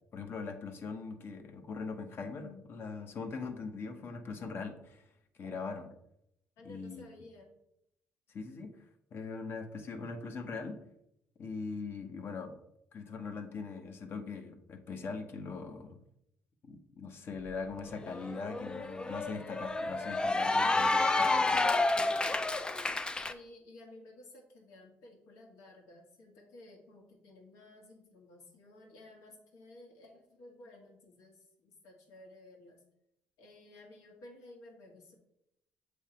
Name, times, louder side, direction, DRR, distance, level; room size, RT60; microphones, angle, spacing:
voice 1, 0.1-5.0 5.4-5.9 6.6-7.0 8.3-8.8 9.1-10.8 11.4-12.6 12.9-16.0 16.6-21.6, left 4 dB, 50° left, 6 dB, 1.0 m, -41 dB
voice 2, 6.6-7.5 23.3-32.8 33.4-35.2, left 1 dB, 80° left, 1 dB, 1.8 m, -54 dB
Cheering / Applause, 17.5-17.6 17.9-23.3, left 2 dB, 15° left, 0.4 m, -30 dB
7.5 x 3.4 x 4.4 m, 0.79 s
cardioid pair, 90°, 5 cm